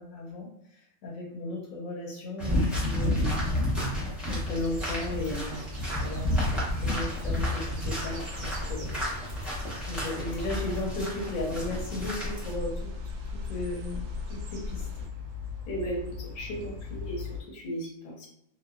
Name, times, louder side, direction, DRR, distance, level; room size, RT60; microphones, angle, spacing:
voice 1, 0.0-3.3 4.2-5.6 6.0-9.0 9.7-12.9 13.3-14.9, left 2 dB, 75° left, -2 dB, 1.0 m, -36 dB
sound 1, 2.4-12.5, left 1 dB, ahead, 0.6 m, -31 dB
sound 2, 4.5-17.4, left 4 dB, 85° right, 1.1 m, -41 dB
sound 3, 5.1-15.1, left 1 dB, 65° right, 0.7 m, -41 dB
voice 2, 15.7-18.3, right 1 dB, 45° left, -3 dB, 0.8 m, -36 dB
2.8 x 2.1 x 2.3 m, 0.75 s
omnidirectional pair, 1.6 m